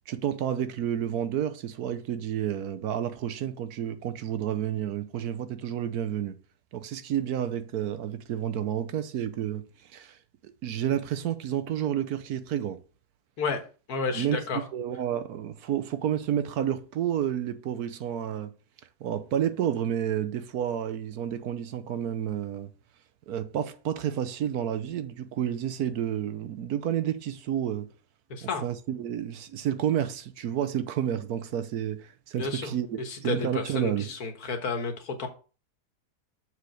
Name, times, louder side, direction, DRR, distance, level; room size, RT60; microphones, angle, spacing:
voice 1, 0.1-6.3 6.7-9.6 9.9-10.2 10.4-12.8 14.1-18.5 19.0-22.7 23.3-27.9 28.4-34.1, right 10 dB, 70° right, 1.3 m, -30 dB
voice 2, 13.9-14.6 28.4-28.6 32.4-32.7 33.0-35.3, left 4 dB, 70° left, 1.9 m, -31 dB
6.9 x 4.8 x 6.5 m
omnidirectional pair, 1.7 m